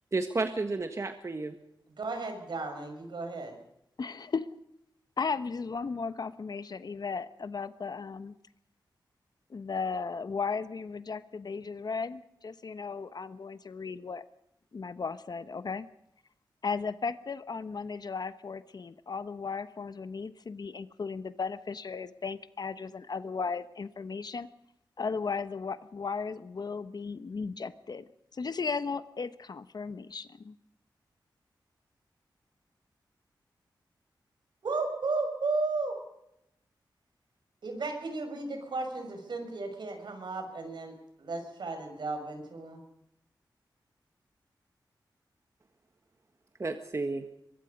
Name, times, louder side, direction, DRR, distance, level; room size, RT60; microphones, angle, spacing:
voice 1, 0.1-1.6 46.6-47.3, right 3 dB, 40° right, 7 dB, 1.6 m, -31 dB
voice 2, 2.0-3.6 34.6-36.0 37.6-40.9 41.2-42.8, right 3 dB, 70° right, 5 dB, 6.1 m, -34 dB
voice 3, 4.0-4.5 5.2-8.3 9.5-14.2 14.7-15.9 16.6-24.5 25.0-30.5, left 5 dB, 55° left, 13 dB, 1.1 m, -36 dB
23.5 x 22.0 x 5.3 m, 0.81 s
wide cardioid pair, 95°, 8 cm